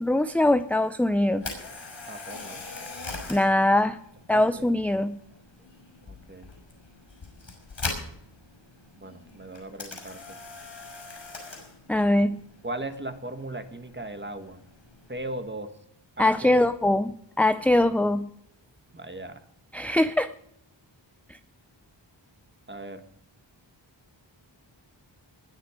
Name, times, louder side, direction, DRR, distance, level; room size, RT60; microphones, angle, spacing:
voice 1, 0.0-1.4 3.3-4.0 4.3-5.2 11.9-12.4 16.2-17.1 17.4-18.3 19.7-20.3, left 1 dB, 5° left, 12 dB, 0.5 m, -22 dB
Camera, 1.3-15.4, left 3 dB, 75° left, 6.0 m, -41 dB
voice 2, 2.1-2.7 4.3-4.8 6.0-6.5 9.0-10.4 12.6-14.6 15.1-15.7 16.2-17.0 17.8-18.0 18.9-19.4 22.7-23.0, right 2 dB, 25° right, 8 dB, 1.8 m, -38 dB
20.5 x 10.0 x 5.1 m, 0.75 s
wide cardioid pair, 80°, 46 cm